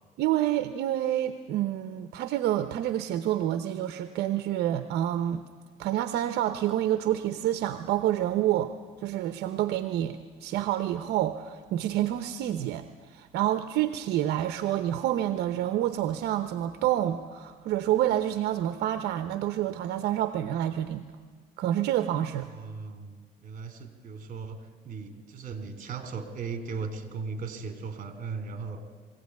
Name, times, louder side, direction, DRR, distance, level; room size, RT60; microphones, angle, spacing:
voice 1, 0.2-5.4 5.8-8.7 9.0-21.1 21.6-22.5, right 12 dB, 80° right, 10 dB, 0.9 m, -28 dB
voice 2, 22.4-24.6 24.8-28.8, right 4 dB, 50° right, 8 dB, 3.2 m, -37 dB
22.5 x 16.5 x 9.5 m, 1.5 s
cardioid pair, 110°, 17 cm